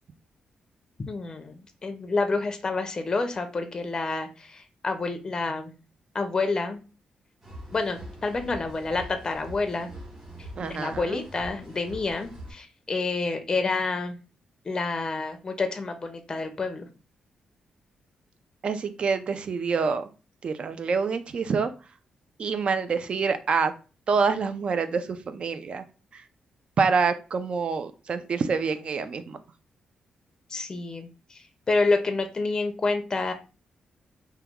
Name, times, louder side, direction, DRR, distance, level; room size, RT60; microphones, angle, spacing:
voice 1, 1.0-5.7 6.1-6.8 7.7-9.9 10.4-14.2 14.6-16.9 30.5-33.3, left 3 dB, 30° left, 7 dB, 0.5 m, -28 dB
sound 1, 7.4-12.5, equal, 20° right, 1.5 m, -43 dB
voice 2, 10.6-11.2 18.6-20.1 20.4-21.7 22.4-23.7 24.1-25.8 26.1-26.2 26.8-29.4, right 5 dB, 50° right, 10 dB, 0.4 m, -26 dB
2.9 x 2.2 x 3.5 m, 0.32 s
cardioid pair, 110°, 2 cm